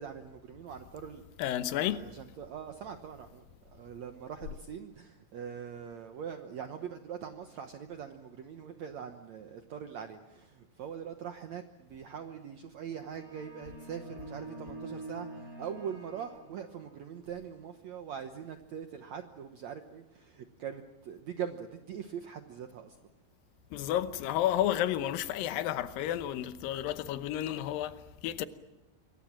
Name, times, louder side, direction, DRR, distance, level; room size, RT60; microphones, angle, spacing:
voice 1, 0.0-1.2 1.8-23.0, right 8 dB, 85° right, 1.5 m, -42 dB
voice 2, 1.4-2.0 23.7-28.0 28.2-28.5, left 12 dB, 70° left, 2.4 m, -31 dB
sound 1, 13.0-17.0, right 2 dB, 20° right, 6.6 m, -46 dB
27.0 x 23.5 x 7.4 m
omnidirectional pair, 4.9 m